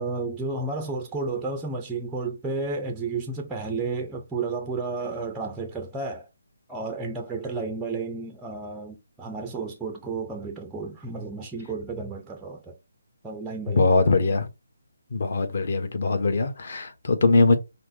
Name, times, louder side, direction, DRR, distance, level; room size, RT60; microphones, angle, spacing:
voice 1, 0.0-6.3 6.7-12.8 13.2-14.1, right 3 dB, 5° right, 0.4 m, -32 dB
voice 2, 13.7-14.5 15.1-17.6, left 3 dB, 50° left, 1.1 m, -21 dB
5.7 x 2.0 x 3.9 m
hypercardioid pair, 165°, 0 cm